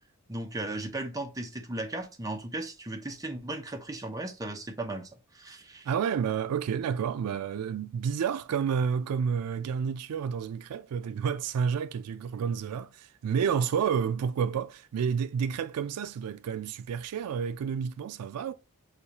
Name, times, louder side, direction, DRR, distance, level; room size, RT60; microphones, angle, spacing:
voice 1, 0.3-5.9, right 2 dB, 15° right, 0.7 m, -36 dB
voice 2, 5.9-18.5, right 7 dB, 85° right, 0.3 m, -30 dB
6.6 x 2.3 x 2.8 m
head